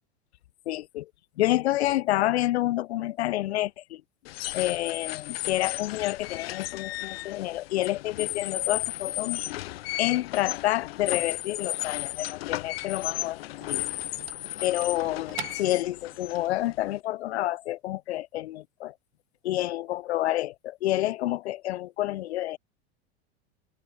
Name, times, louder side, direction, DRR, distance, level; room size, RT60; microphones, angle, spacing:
voice 1, 0.6-1.1 1.4-4.0 4.5-9.4 10.0-13.4 13.7-13.8 14.6-18.9 19.4-22.6, left 15 dB, 80° left, 1.7 m, -28 dB
sound 1, 4.2-17.0, left 17 dB, 65° left, 1.1 m, -34 dB
sound 2, 12.8-16.4, right 15 dB, 70° right, 2.5 m, -44 dB
open air
supercardioid pair, 180°, 32 cm